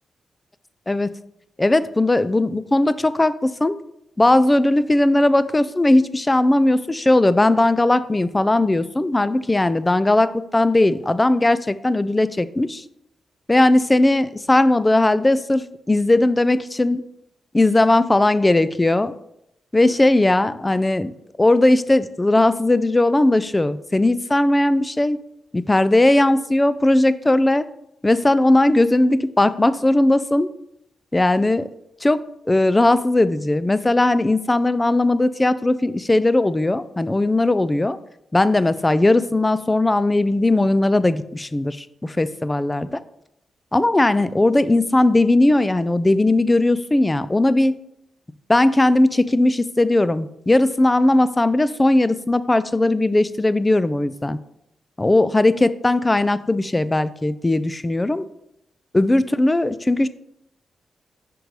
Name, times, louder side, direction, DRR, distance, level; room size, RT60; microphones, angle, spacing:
voice 1, 1.6-3.8 4.2-12.8 13.5-17.0 17.5-19.1 19.7-21.1 21.4-25.2 25.5-27.6 28.0-30.5 31.1-31.7 32.0-38.0 38.3-43.0 43.7-47.8 48.5-54.4 55.0-58.3 58.9-60.1, left 2 dB, 20° left, 15 dB, 0.3 m, -18 dB
6.0 x 5.1 x 3.1 m, 0.79 s
cardioid pair, 60°, 0 cm